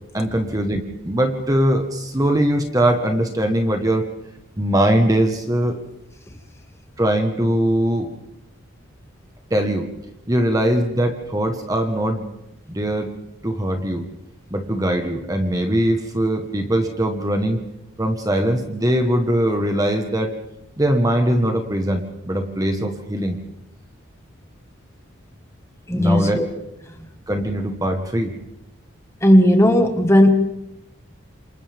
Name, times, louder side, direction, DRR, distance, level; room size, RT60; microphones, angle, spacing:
voice 1, 0.1-4.1 4.6-5.8 7.0-8.1 9.5-9.9 10.3-12.3 12.7-13.1 13.4-14.1 14.5-17.7 18.0-20.3 20.8-23.4 25.9-26.4 27.3-28.4, right 1 dB, 15° right, 4 dB, 1.3 m, -21 dB
voice 2, 25.9-26.5 29.2-30.3, equal, 15° left, 5 dB, 1.6 m, -15 dB
28.0 x 27.0 x 3.6 m, 0.86 s
head